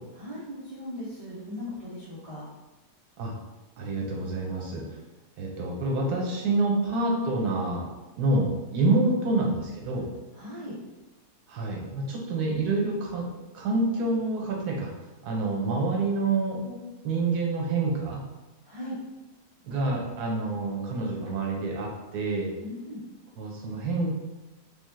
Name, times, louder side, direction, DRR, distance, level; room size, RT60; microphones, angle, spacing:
voice 1, 0.1-2.4 10.3-10.7 18.6-19.0 22.6-23.0, left 1 dB, 60° right, -9 dB, 0.3 m, -38 dB
voice 2, 3.8-4.8 5.4-7.9 8.2-10.1 11.5-13.3 13.5-14.9 15.2-18.2 19.6-22.5 23.4-24.1, right 2 dB, 75° right, -1 dB, 1.2 m, -27 dB
3.6 x 2.0 x 3.1 m, 1.1 s
omnidirectional pair, 1.7 m